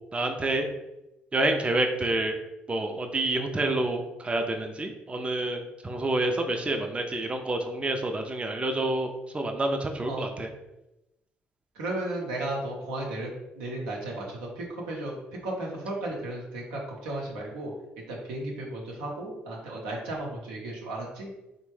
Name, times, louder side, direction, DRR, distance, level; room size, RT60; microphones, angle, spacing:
voice 1, 0.1-0.7 1.3-2.3 2.7-10.5, right 2 dB, 20° right, 4 dB, 0.4 m, -28 dB
voice 2, 11.7-13.3 13.6-15.2 15.4-17.7 18.1-21.3, right 1 dB, 85° right, -2 dB, 0.7 m, -34 dB
3.3 x 2.1 x 3.1 m, 0.93 s
hypercardioid pair, 55°, 5 cm